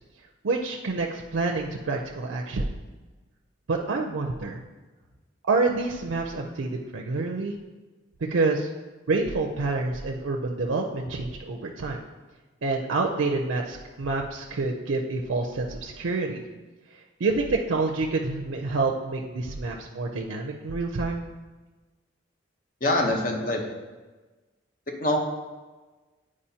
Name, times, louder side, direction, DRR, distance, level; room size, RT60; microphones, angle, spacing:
voice 1, 0.4-2.7 3.7-4.6 5.5-7.5 8.3-8.7 9.1-12.0 12.6-16.4 17.2-21.2, right 3 dB, 80° right, 1 dB, 0.5 m, -27 dB
voice 2, 22.8-23.6 24.9-25.2, left 1 dB, 45° left, 1 dB, 0.9 m, -24 dB
8.6 x 4.9 x 2.8 m, 1.2 s
head